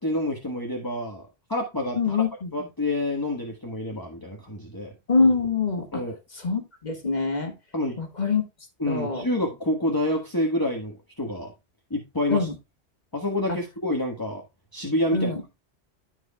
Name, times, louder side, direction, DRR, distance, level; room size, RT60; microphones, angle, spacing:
voice 1, 0.0-2.2 2.5-4.9 5.9-6.2 7.7-8.0 8.8-11.5 11.9-12.5 13.1-14.4 14.7-15.3, left 1 dB, 20° left, 1.3 m, -28 dB
voice 2, 2.0-2.5 5.1-6.0 6.3-7.5 8.0-8.4 8.9-9.3 12.3-12.6 13.5-13.6 15.1-15.4, left 4 dB, 40° left, 1.8 m, -24 dB
14.0 x 4.7 x 2.2 m
omnidirectional pair, 1.1 m